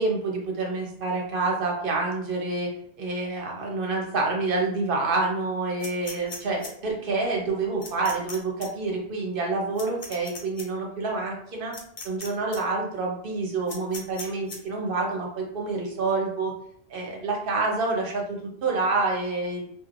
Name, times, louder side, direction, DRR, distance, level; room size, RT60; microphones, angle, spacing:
voice 1, 0.0-11.7 12.0-16.5 16.9-19.7, right 3 dB, 55° right, -1 dB, 0.9 m, -28 dB
sound 1, 5.8-6.7 7.8-8.4 8.6-8.7 9.8-10.6 11.7-12.3 12.5-12.6 13.7-14.6, left 3 dB, 45° left, 0.5 m, -38 dB
3.1 x 2.5 x 2.5 m, 0.68 s
omnidirectional pair, 1.1 m